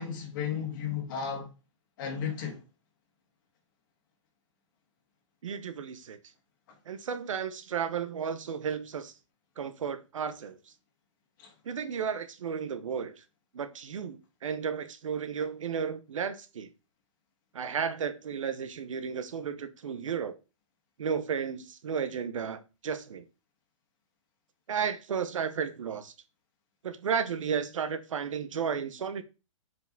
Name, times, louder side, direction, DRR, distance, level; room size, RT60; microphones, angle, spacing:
voice 1, 0.0-1.5 2.0-2.6 11.4-11.5, left 7 dB, 40° left, 2.2 m, -34 dB
voice 2, 5.4-6.2 6.9-9.1 9.6-10.6 11.7-13.1 13.5-16.7 17.5-20.3 21.0-23.2 24.7-26.1 26.8-29.2, right 7 dB, 80° right, 1.1 m, -33 dB
6.4 x 5.0 x 4.1 m
hypercardioid pair, 160°, 16 cm